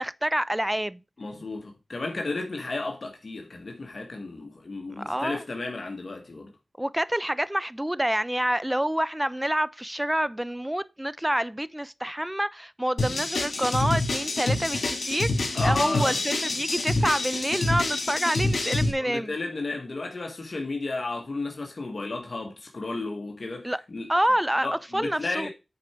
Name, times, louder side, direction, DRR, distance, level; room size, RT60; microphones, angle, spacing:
voice 1, 0.0-1.0 5.0-5.4 6.8-19.3 23.6-23.8 24.1-24.7 24.9-25.5, right 1 dB, 10° right, 0.5 m, -27 dB
voice 2, 1.2-6.5 15.5-16.2 19.0-24.1 24.6-25.5, left 3 dB, 55° left, 1.7 m, -33 dB
sound 1, 13.0-18.9, left 2 dB, 80° left, 2.9 m, -27 dB
9.1 x 4.9 x 4.5 m
cardioid pair, 50°, 0 cm